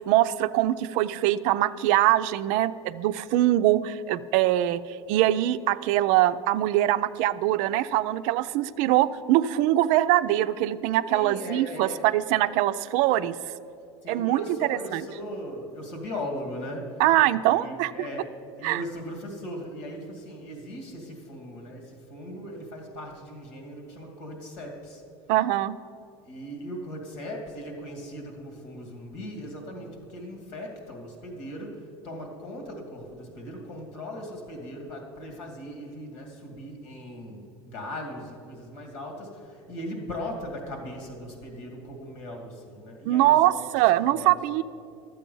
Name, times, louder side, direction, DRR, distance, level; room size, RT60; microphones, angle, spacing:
voice 1, 0.0-4.8 5.1-13.4 14.1-14.4 14.7-15.0 17.0-17.9 18.6-18.8 25.3-25.8 43.1-44.6, right 14 dB, 70° right, 13 dB, 0.4 m, -23 dB
voice 2, 11.1-12.1 14.0-17.0 17.5-18.3 18.6-25.0 26.2-43.6 44.0-44.3, equal, 80° left, 3 dB, 2.3 m, -38 dB
12.0 x 7.6 x 5.4 m, 2.6 s
supercardioid pair, 95°, 14 cm